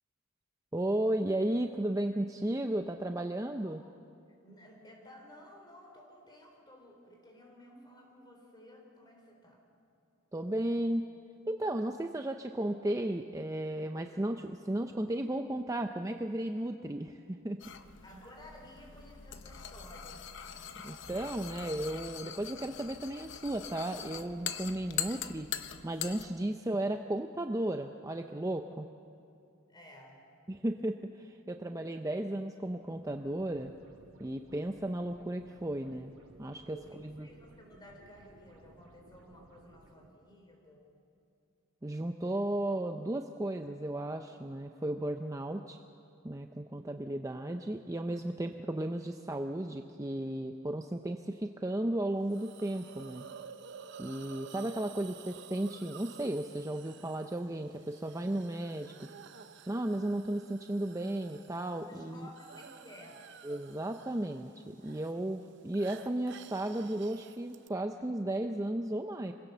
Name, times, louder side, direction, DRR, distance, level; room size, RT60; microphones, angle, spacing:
voice 1, 0.7-3.8 10.3-11.0 11.5-17.6 20.8-25.5 25.8-28.9 30.5-33.7 34.2-36.1 36.4-36.8 37.2-37.3 41.8-45.8 46.2-53.3 54.0-59.1 59.7-62.3 63.4-69.3, right 1 dB, 15° right, 5 dB, 0.5 m, -34 dB
voice 2, 3.7-4.0 4.4-9.6 18.0-20.3 29.7-30.2 36.7-40.9 61.7-63.2, left 1 dB, 20° left, 1 dB, 3.9 m, -54 dB
sound 1, 17.6-26.3, left 9 dB, 55° left, 0.9 m, -42 dB
sound 2, 32.8-40.1, right 1 dB, 80° right, 2.7 m, -59 dB
Hiss, 52.3-67.7, right 7 dB, 55° right, 0.7 m, -52 dB
25.5 x 17.0 x 6.9 m, 2.7 s
head